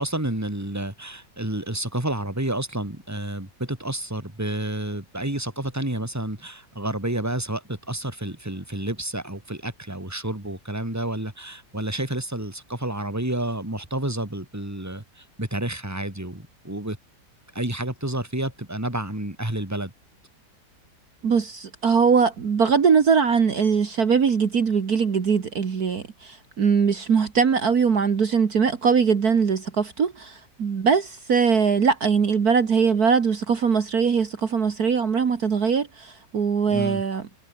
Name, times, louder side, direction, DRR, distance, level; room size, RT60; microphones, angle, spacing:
voice 1, 0.0-17.0 17.5-19.9 36.7-37.0, right 1 dB, 10° right, 3.3 m, -30 dB
voice 2, 21.2-37.2, right 6 dB, 55° right, 2.1 m, -21 dB
omnidirectional pair, 1.9 m